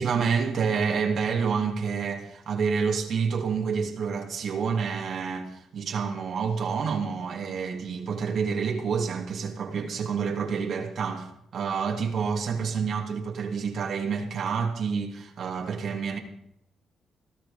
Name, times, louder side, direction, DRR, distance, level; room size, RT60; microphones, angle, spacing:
voice 1, 0.0-16.2, right 6 dB, 60° right, 2.9 m, -28 dB
18.5 x 13.0 x 5.3 m
cardioid pair, 90°, 0 cm